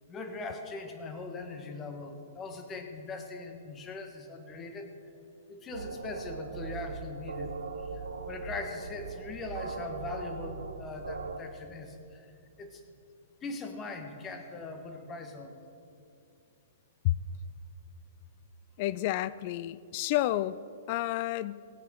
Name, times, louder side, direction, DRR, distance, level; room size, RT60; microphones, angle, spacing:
voice 1, 0.1-4.9 5.5-7.6 7.9-12.3 12.6-12.8 13.4-15.6, left 3 dB, 20° left, 5 dB, 1.7 m, -41 dB
sound 1, 5.7-11.4, right 4 dB, 80° right, 1.1 m, -39 dB
voice 2, 18.8-20.6 20.9-21.6, left 15 dB, 45° left, 19 dB, 0.4 m, -30 dB
17.0 x 8.4 x 6.5 m, 2.5 s
figure-of-eight pair, 115°, 0 cm